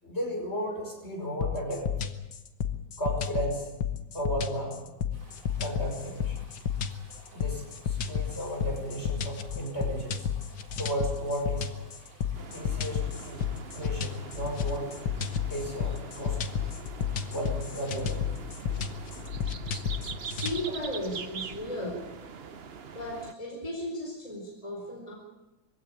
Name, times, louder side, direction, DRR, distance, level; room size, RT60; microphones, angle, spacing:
voice 1, 0.0-1.9 3.0-3.7 4.1-4.8 5.6-6.4 7.3-10.2 10.8-11.7 12.5-13.5 13.7-14.9 15.5-16.5 17.3-18.3, right 1 dB, 35° left, 1 dB, 5.8 m, -34 dB
sound 1, 1.4-20.6, left 8 dB, 75° left, 1.9 m, -32 dB
sound 2, 5.1-19.3, right 1 dB, 65° right, 7.0 m, -55 dB
sound 3, 12.3-23.3, right 6 dB, 45° right, 0.9 m, -43 dB
voice 2, 20.2-22.0 22.9-25.1, left 1 dB, 15° left, -1 dB, 4.5 m, -35 dB
22.5 x 16.5 x 8.7 m, 1.1 s
omnidirectional pair, 2.0 m